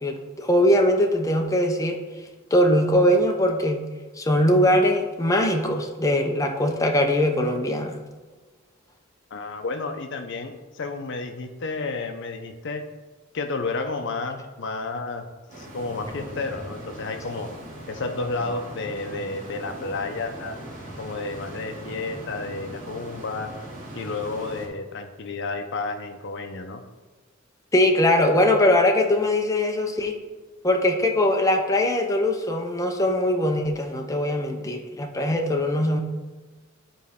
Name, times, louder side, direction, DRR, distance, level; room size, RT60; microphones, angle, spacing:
voice 1, 0.0-2.0 2.5-3.8 4.2-8.0 27.7-30.1 30.6-36.0, left 1 dB, 15° left, 2 dB, 0.6 m, -21 dB
voice 2, 9.3-12.8 13.3-15.3 15.6-17.5 17.9-20.6 21.0-23.5 23.9-26.8, left 3 dB, 60° left, 6 dB, 0.6 m, -31 dB
sound 1, 15.5-24.7, right 1 dB, 45° right, 2.4 m, -40 dB
10.0 x 4.1 x 3.6 m, 1.3 s
head